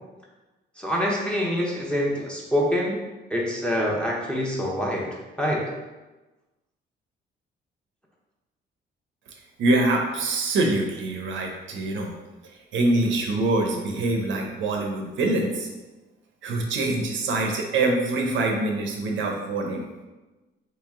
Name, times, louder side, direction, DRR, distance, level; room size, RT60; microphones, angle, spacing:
voice 1, 0.8-3.0 3.3-5.1 5.4-5.6, equal, 5° left, -3 dB, 0.8 m, -25 dB
voice 2, 9.6-12.1 12.7-15.7 16.4-19.8, right 2 dB, 75° right, 1 dB, 0.7 m, -24 dB
3.0 x 2.9 x 3.6 m, 1.1 s
cardioid pair, 90°, 20 cm